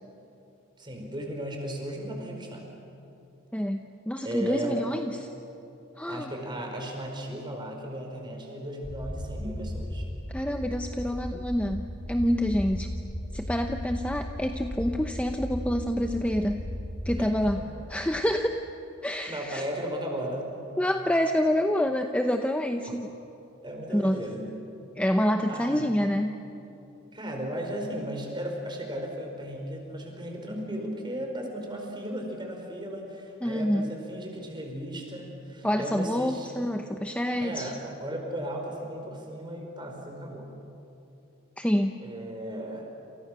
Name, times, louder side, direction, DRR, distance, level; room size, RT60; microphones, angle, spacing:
voice 1, 0.8-2.6 4.2-4.8 6.0-10.0 17.2-17.7 19.3-20.5 23.6-24.5 25.5-25.9 27.1-36.5 37.4-40.5 42.0-42.9, right 1 dB, 20° right, 2 dB, 4.7 m, -36 dB
voice 2, 3.5-5.3 6.0-6.3 10.3-12.9 13.3-16.7 17.0-17.6 17.9-18.6 19.0-19.6 20.8-23.1 23.9-24.2 25.0-26.4 33.4-33.9 35.6-37.7 41.6-42.0, equal, 5° left, 5 dB, 0.8 m, -27 dB
sound 1, 8.8-17.5, equal, 30° left, 4.5 m, -36 dB
28.5 x 28.0 x 6.4 m, 2.8 s
head